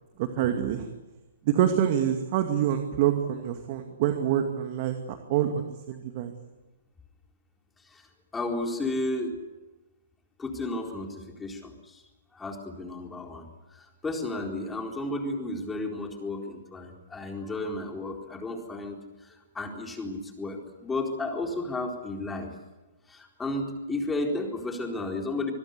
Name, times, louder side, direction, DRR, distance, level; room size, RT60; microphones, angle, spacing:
voice 1, 0.2-0.9 1.5-6.3, right 10 dB, 45° right, 6 dB, 2.3 m, -26 dB
voice 2, 8.3-9.4 10.4-12.0 12.3-13.5 13.7-22.5 23.1-25.5, left 2 dB, 10° left, 2 dB, 4.2 m, -33 dB
26.5 x 21.0 x 8.2 m, 1.1 s
figure-of-eight pair, 120°, 0 cm